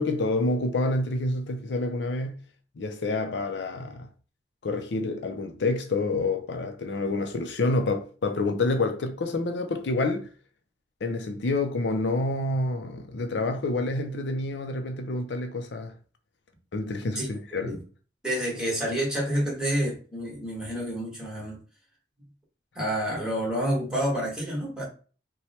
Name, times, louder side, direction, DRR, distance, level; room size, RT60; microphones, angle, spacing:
voice 1, 0.0-2.4 2.8-4.1 4.6-10.3 11.0-15.9 16.7-17.8, left 2 dB, 75° left, 0.5 m, -28 dB
voice 2, 18.2-21.6 22.7-24.8, equal, 5° right, 1.5 m, -28 dB
3.0 x 2.2 x 4.2 m
head